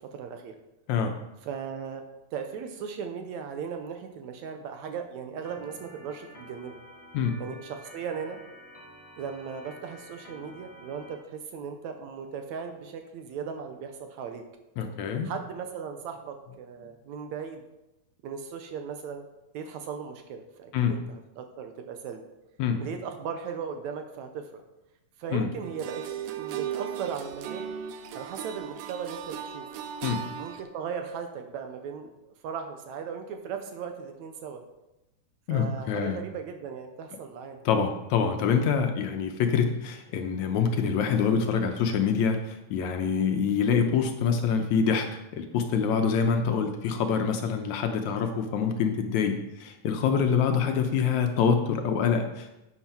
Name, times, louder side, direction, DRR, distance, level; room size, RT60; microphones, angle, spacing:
voice 1, 0.1-0.6 1.4-2.0 2.3-6.8 7.4-8.4 9.2-14.4 15.2-17.6 18.2-19.2 19.5-22.2 22.8-24.6 25.2-26.0 26.3-27.7 28.1-29.7 30.3-32.1 32.4-34.6 35.5-37.6, right 6 dB, 70° right, 6 dB, 2.0 m, -37 dB
Organ, 5.4-11.2, equal, 20° left, 0.9 m, -50 dB
voice 2, 14.8-15.3 20.7-20.9 22.6-22.8 25.3-25.5 30.0-30.2 35.5-36.2 37.7-45.1 45.3-52.5, left 6 dB, 75° left, 5 dB, 2.0 m, -25 dB
sound 1, 25.6-30.6, right 9 dB, 90° right, 2.4 m, -37 dB
10.5 x 8.2 x 4.4 m, 0.95 s
omnidirectional pair, 3.7 m